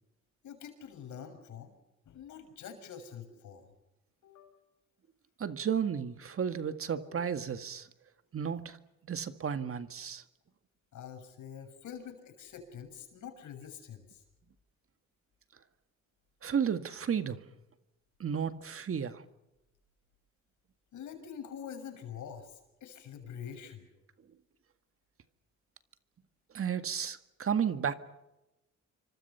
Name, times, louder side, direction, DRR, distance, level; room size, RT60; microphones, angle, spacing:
voice 1, 0.4-1.7 2.0-3.7 4.2-4.6 6.9-7.2 10.9-14.2 20.9-23.9, left 8 dB, 75° left, 6.9 m, -46 dB
voice 2, 5.4-7.9 8.3-8.8 9.1-10.2 16.4-17.4 18.2-19.2 26.5-27.9, right 7 dB, 45° right, 1.9 m, -33 dB
28.0 x 24.5 x 5.7 m
cardioid pair, 90°, 30 cm